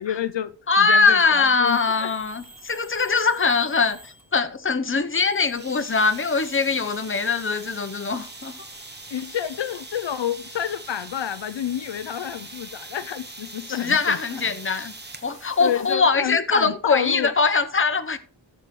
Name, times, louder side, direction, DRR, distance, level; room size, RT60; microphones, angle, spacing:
voice 1, 0.0-2.1 9.1-14.2 15.6-17.3, left 10 dB, 70° left, 0.6 m, -29 dB
voice 2, 0.7-8.6 13.7-14.9 15.2-18.2, left 4 dB, 30° left, 0.8 m, -22 dB
sound 1, 1.6-4.5 5.0-10.2, right 1 dB, 5° right, 3.4 m, -50 dB
sound 2, 5.6-15.3, right 3 dB, 25° right, 0.9 m, -43 dB
sound 3, 5.9-15.9, right 2 dB, 65° right, 5.0 m, -48 dB
14.5 x 6.5 x 3.2 m
wide cardioid pair, 80°, 45 cm